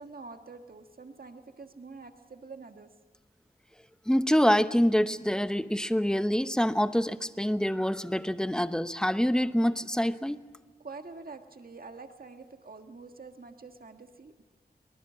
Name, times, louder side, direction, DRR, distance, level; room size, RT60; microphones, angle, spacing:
voice 1, 0.0-2.9 10.8-14.4, right 4 dB, 65° right, 6 dB, 1.6 m, -46 dB
voice 2, 4.1-10.4, equal, 5° left, 11 dB, 0.9 m, -26 dB
23.5 x 20.0 x 7.4 m, 1.5 s
wide cardioid pair, 65°, 17 cm